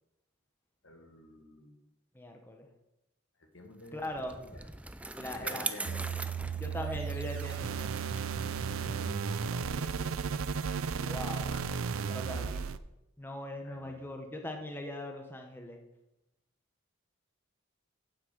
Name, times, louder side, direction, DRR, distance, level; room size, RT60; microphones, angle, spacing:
voice 1, 0.8-1.8 3.4-4.7 5.2-6.2 8.4-10.2 10.9-11.9 12.2-12.5 13.6-14.0, left 2 dB, 70° left, 4 dB, 1.7 m, -51 dB
voice 2, 2.1-2.7 3.9-4.4 5.1-6.0 6.6-7.9 11.0-11.5 12.1-12.7 13.2-15.8, left 1 dB, 10° left, 3 dB, 0.9 m, -41 dB
Bicycle, 3.9-10.6, right 2 dB, 5° right, 0.3 m, -42 dB
sound 1, 5.9-12.8, right 6 dB, 85° right, 0.5 m, -34 dB
8.9 x 7.8 x 5.2 m, 0.92 s
head